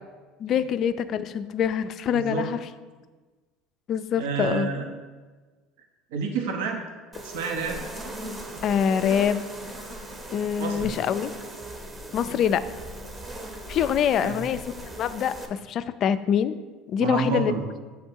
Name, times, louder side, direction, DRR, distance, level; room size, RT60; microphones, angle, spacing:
voice 1, 0.4-2.6 3.9-4.7 8.6-9.4 10.3-11.3 12.1-12.6 13.7-14.6 15.0-16.6 16.9-17.5, left 8 dB, 45° left, 12 dB, 0.3 m, -25 dB
voice 2, 2.1-2.4 4.2-4.9 6.1-6.8 7.2-7.8 10.6-11.0 14.2-14.4 17.0-17.6, right 5 dB, 85° right, 2 dB, 0.8 m, -29 dB
sound 1, 7.1-15.5, right 1 dB, 20° right, 0.8 m, -38 dB
7.4 x 3.6 x 4.5 m, 1.3 s
supercardioid pair, 115°, 0 cm